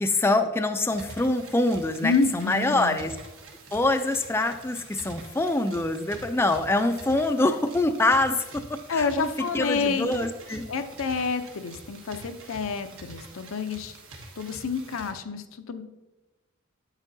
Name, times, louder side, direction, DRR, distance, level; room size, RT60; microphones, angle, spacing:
voice 1, 0.0-3.1 3.7-9.3 9.5-10.6, left 2 dB, 10° left, 6 dB, 0.3 m, -25 dB
sound 1, 0.9-15.1, right 2 dB, 75° right, 1.3 m, -46 dB
voice 2, 2.0-3.0 8.9-10.2 10.7-14.0 14.4-15.8, left 4 dB, 75° left, 8 dB, 0.6 m, -28 dB
9.0 x 8.1 x 2.7 m, 1.1 s
head